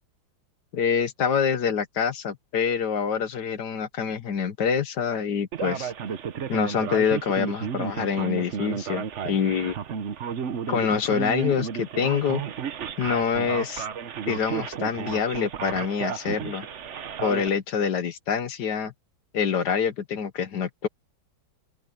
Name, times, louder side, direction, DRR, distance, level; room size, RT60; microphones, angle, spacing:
voice 1, 0.7-5.9 6.5-9.8 10.7-12.4 13.0-13.9 14.3-16.7 17.2-18.9 19.3-20.9, left 6 dB, 60° left, 1.6 m, -26 dB
Male speech man speaking, 5.5-17.5, right 7 dB, 50° right, 0.9 m, -33 dB
open air
omnidirectional pair, 2.1 m